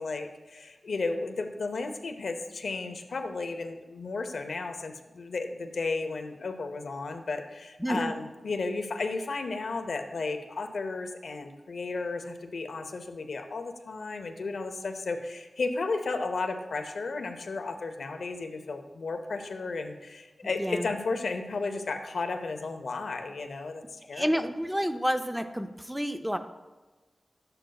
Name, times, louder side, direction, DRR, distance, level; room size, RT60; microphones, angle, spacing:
voice 1, 0.0-24.5, left 3 dB, 90° left, 6 dB, 0.7 m, -34 dB
voice 2, 7.8-8.1 20.6-20.9 24.1-26.4, equal, 5° right, 8 dB, 0.5 m, -29 dB
11.5 x 7.8 x 2.3 m, 1.2 s
wide cardioid pair, 110°, 0 cm